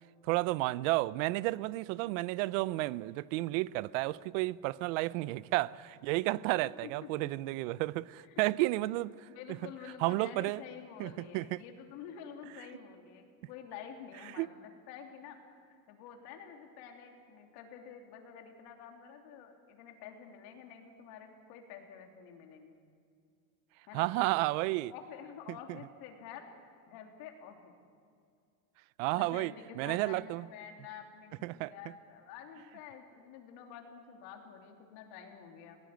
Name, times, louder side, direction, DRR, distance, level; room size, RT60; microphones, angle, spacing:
voice 1, 0.2-9.3 10.0-10.6 11.0-11.6 14.4-14.5 23.9-24.9 29.0-30.5 31.4-31.7, right 19 dB, 55° right, 0.6 m, -32 dB
voice 2, 6.8-7.3 8.2-8.7 9.3-22.7 23.9-24.3 24.9-26.5 26.9-27.8 29.1-35.8, left 7 dB, 55° left, 3.3 m, -49 dB
20.5 x 18.0 x 9.3 m
supercardioid pair, 155°, 46 cm